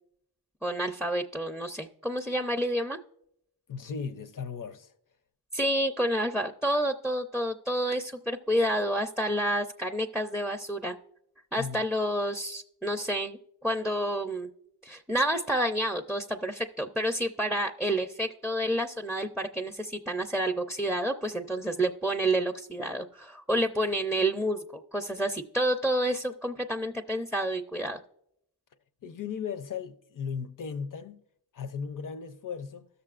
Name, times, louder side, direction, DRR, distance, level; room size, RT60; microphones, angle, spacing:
voice 1, 0.6-3.0 5.5-10.9 11.5-14.5 14.8-28.0, right 1 dB, ahead, 0.5 m, -29 dB
voice 2, 3.7-4.9 11.6-11.8 29.0-31.2 31.5-32.9, left 6 dB, 55° left, 0.6 m, -36 dB
17.5 x 6.8 x 2.4 m
cardioid pair, 50°, 39 cm